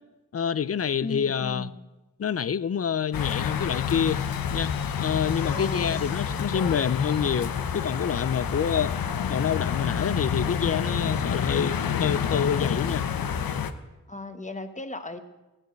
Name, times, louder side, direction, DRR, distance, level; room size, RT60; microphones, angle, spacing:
voice 1, 0.3-1.7 2.2-4.7 5.0-8.9 9.3-13.1, left 7 dB, 45° left, 0.6 m, -27 dB
voice 2, 1.0-1.7 5.5-6.2 14.1-15.2, left 2 dB, 20° left, 1.3 m, -36 dB
sound 1, 3.1-13.7, left 7 dB, 80° left, 1.0 m, -28 dB
16.0 x 9.9 x 7.9 m
wide cardioid pair, 115°, 35 cm